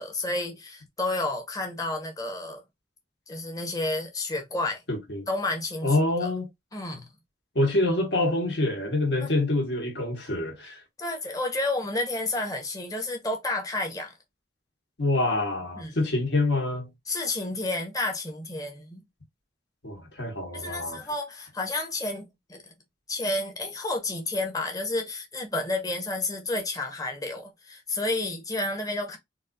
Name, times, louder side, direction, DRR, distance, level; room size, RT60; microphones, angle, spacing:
voice 1, 0.0-2.6 3.3-4.8 5.3-6.3 6.7-7.1 9.2-9.3 11.0-14.1 15.8-16.0 17.1-19.0 20.5-22.7 23.1-29.2, left 2 dB, 20° left, 0.9 m, -31 dB
voice 2, 4.9-5.2 5.8-6.5 7.5-10.8 15.0-16.9 19.8-21.0, left 2 dB, 70° left, 1.4 m, -26 dB
4.1 x 2.5 x 2.4 m
head